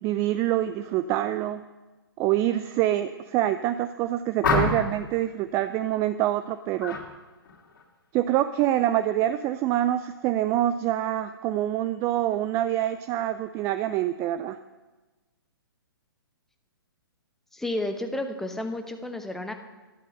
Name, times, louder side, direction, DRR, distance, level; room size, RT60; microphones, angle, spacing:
voice 1, 0.0-1.6 2.2-7.0 8.1-14.6, right 13 dB, 20° right, 11 dB, 0.4 m, -26 dB
sound 1, 4.4-5.0 6.8-7.1 7.4-7.8, left 4 dB, 50° left, 2.6 m, -26 dB
voice 2, 17.5-19.5, left 1 dB, 5° left, 5 dB, 1.0 m, -31 dB
12.0 x 12.0 x 6.7 m, 1.2 s
figure-of-eight pair, 125°, 13 cm